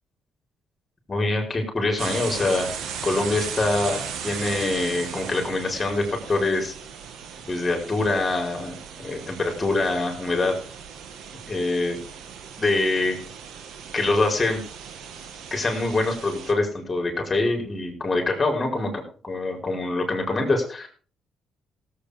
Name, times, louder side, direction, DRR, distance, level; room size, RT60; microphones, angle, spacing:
voice 1, 1.1-2.7 3.0-6.7 7.4-10.5 11.5-12.0 12.6-13.2 13.9-14.6 15.5-20.9, left 2 dB, 25° left, 3 dB, 5.1 m, -24 dB
sound 1, 2.0-16.5, right 7 dB, 80° right, 2.0 m, -37 dB
17.0 x 8.5 x 5.2 m, 0.42 s
cardioid pair, 90°, 0 cm